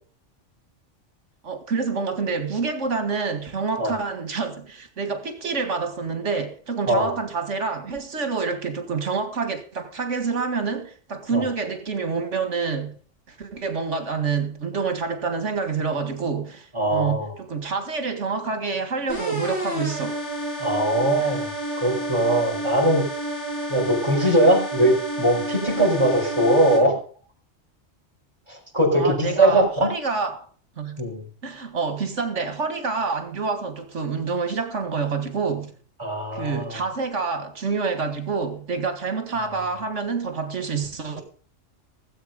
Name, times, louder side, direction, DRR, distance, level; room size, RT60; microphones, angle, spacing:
voice 1, 1.4-13.0 13.3-20.2 21.2-21.4 28.9-30.4 30.8-31.0 31.4-35.7 36.3-41.2, right 4 dB, 75° right, 2.1 m, -27 dB
voice 2, 16.7-17.3 20.6-21.5 21.8-23.1 23.7-26.9 28.5-29.9 31.0-31.2 36.0-36.8, right 1 dB, 25° right, 4.5 m, -21 dB
sound 1, 19.1-26.8, right 1 dB, 70° left, 6.1 m, -30 dB
17.5 x 8.1 x 5.2 m
omnidirectional pair, 1.2 m